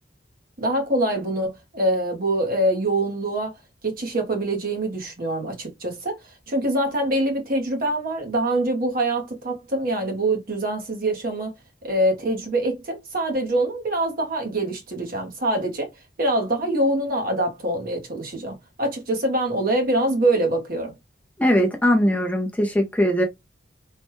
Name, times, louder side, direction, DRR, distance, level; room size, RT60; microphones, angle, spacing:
voice 1, 0.6-3.5 3.8-6.2 6.5-11.5 11.8-15.9 16.2-20.9, right 1 dB, 50° right, 0.9 m, -24 dB
voice 2, 21.4-23.2, equal, 10° left, 0.5 m, -20 dB
3.2 x 2.2 x 3.0 m
head